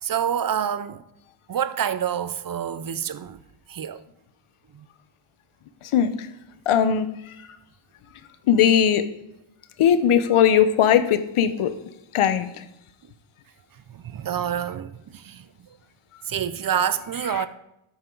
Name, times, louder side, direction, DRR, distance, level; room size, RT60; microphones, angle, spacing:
voice 1, 0.0-1.0 1.5-3.4 3.7-4.0 4.7-4.8 13.9-15.5 16.3-17.5, right 8 dB, 45° right, 0.6 m, -27 dB
voice 2, 5.9-6.3 6.7-7.1 8.5-9.0 9.8-11.7 12.1-12.6 17.4-17.5, left 8 dB, 80° left, 1.0 m, -19 dB
12.5 x 8.3 x 3.9 m
wide cardioid pair, 120°, 49 cm